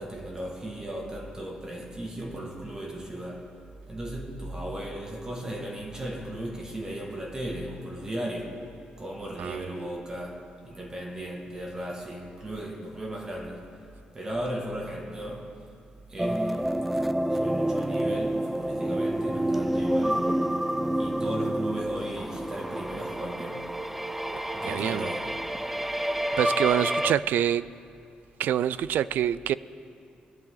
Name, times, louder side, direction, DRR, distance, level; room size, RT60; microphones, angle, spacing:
voice 1, 0.0-3.5 3.9-8.7 9.0-13.6 14.1-15.6 16.1-16.7 17.3-20.3 21.0-23.7 24.5-25.4, right 1 dB, 20° right, 1.7 m, -36 dB
sound 1, 16.2-27.1, right 1 dB, 5° right, 0.3 m, -28 dB
voice 2, 24.7-25.1 26.4-27.6 28.4-29.5, right 10 dB, 80° right, 0.3 m, -26 dB
22.5 x 10.5 x 3.8 m
cardioid pair, 145°, 3 cm